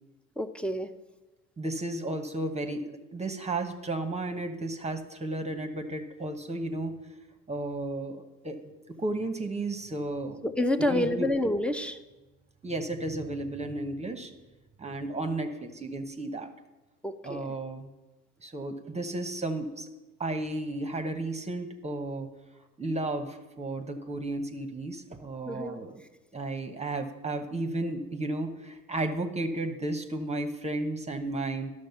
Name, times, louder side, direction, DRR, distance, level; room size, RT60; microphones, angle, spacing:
voice 1, 0.4-0.9 10.4-12.0 17.0-17.5 25.5-25.8, left 1 dB, 5° left, 10 dB, 0.7 m, -28 dB
voice 2, 1.6-6.9 7.5-8.7 9.0-10.4 10.8-11.3 12.6-14.3 14.8-16.5 17.2-17.9 18.4-19.9 20.2-22.3 22.8-26.0 26.3-31.7, right 2 dB, 15° right, 6 dB, 1.0 m, -33 dB
11.5 x 6.5 x 5.7 m, 1.1 s
hypercardioid pair, 65°, 38 cm